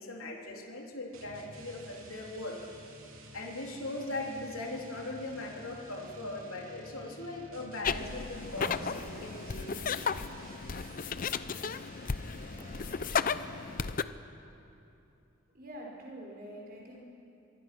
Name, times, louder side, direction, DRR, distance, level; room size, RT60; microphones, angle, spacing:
voice 1, 0.0-2.8 3.3-10.0, left 2 dB, 80° left, 0 dB, 3.2 m, -40 dB
sound 1, 1.1-14.2, right 1 dB, 75° right, 3.0 m, -51 dB
sound 2, 7.4-7.7 8.4-9.2 9.9-10.1 10.4-12.7, equal, 10° right, 4.9 m, -49 dB
sound 3, 7.8-14.0, left 5 dB, 40° left, 0.6 m, -34 dB
voice 2, 15.5-17.0, right 1 dB, 45° right, -2 dB, 5.4 m, -45 dB
26.0 x 23.0 x 6.1 m, 2.8 s
head